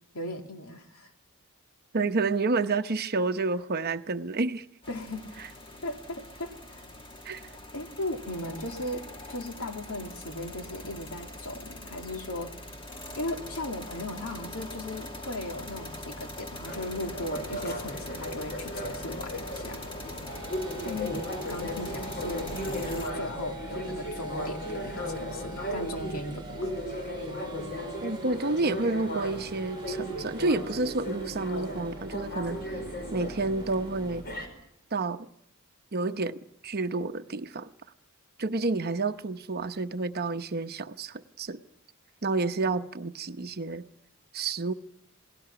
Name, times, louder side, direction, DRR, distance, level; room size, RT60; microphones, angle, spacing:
voice 1, 0.1-1.1 4.9-5.3 5.8-6.8 7.7-12.5 13.2-19.8 20.8-26.7, left 1 dB, 80° left, 2.4 m, -37 dB
voice 2, 1.9-4.6 7.2-7.4 28.0-32.6 33.1-34.3 34.9-35.3 35.9-37.7 38.4-41.6 42.2-43.9 44.3-44.7, right 3 dB, 45° right, 0.8 m, -29 dB
sound 1, 4.8-23.1, left 1 dB, 25° left, 1.8 m, -42 dB
sound 2, 16.6-34.5, equal, 50° left, 4.9 m, -36 dB
sound 3, 20.3-34.2, right 1 dB, 20° right, 1.2 m, -45 dB
27.5 x 19.0 x 5.9 m
head